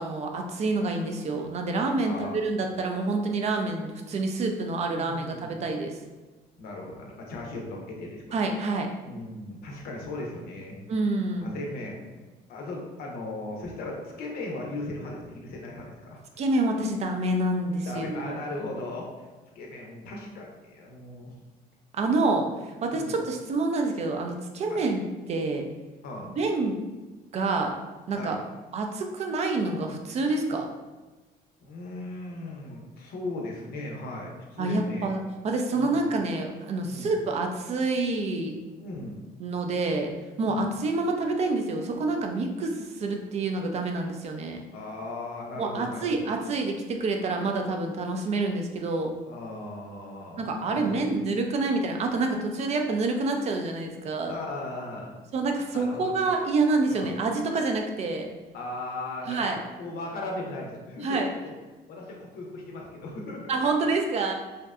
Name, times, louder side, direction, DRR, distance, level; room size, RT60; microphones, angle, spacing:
voice 1, 0.0-6.0 8.3-8.9 10.9-11.5 16.4-18.4 22.0-22.5 22.8-25.0 25.3-25.7 26.4-26.8 27.3-27.7 28.1-28.4 28.7-30.7 34.6-38.6 39.4-40.1 40.4-44.6 45.6-49.1 50.4-54.3 55.3-58.3 59.3-59.6 61.0-61.3 63.5-64.3, right 3 dB, 40° right, 3 dB, 0.4 m, -27 dB
voice 2, 2.0-2.3 4.9-5.5 6.6-8.4 9.0-10.8 11.4-12.2 12.5-16.2 17.8-19.3 19.5-21.3 22.9-23.2 24.7-24.8 26.0-26.3 28.2-28.4 31.6-35.1 35.7-36.0 36.8-37.1 38.8-39.3 40.5-40.7 44.7-46.3 49.2-51.1 54.3-55.1 55.7-56.1 56.9-57.1 58.5-61.5 61.9-63.9, left 2 dB, 65° left, -1 dB, 0.6 m, -37 dB
2.6 x 2.1 x 2.3 m, 1.2 s
cardioid pair, 110°, 17 cm